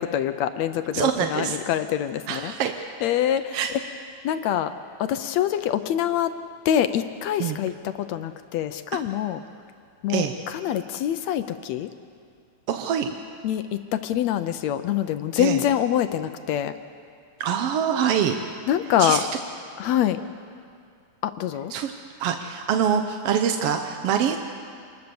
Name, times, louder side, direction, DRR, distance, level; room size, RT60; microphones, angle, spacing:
voice 1, 0.0-2.5 3.0-3.6 4.2-4.7 5.0-6.3 6.7-9.4 10.0-11.9 13.4-16.7 18.7-19.2 19.8-20.2 21.2-21.7, left 10 dB, 75° left, 10 dB, 1.7 m, -25 dB
voice 2, 0.9-1.6 2.3-2.7 3.5-3.7 7.4-7.6 10.1-10.3 12.7-13.1 15.4-15.6 17.4-18.4 19.0-19.3 21.7-21.9 22.2-24.4, right 8 dB, 65° right, 5 dB, 1.6 m, -24 dB
26.5 x 20.5 x 7.0 m, 2.3 s
omnidirectional pair, 3.6 m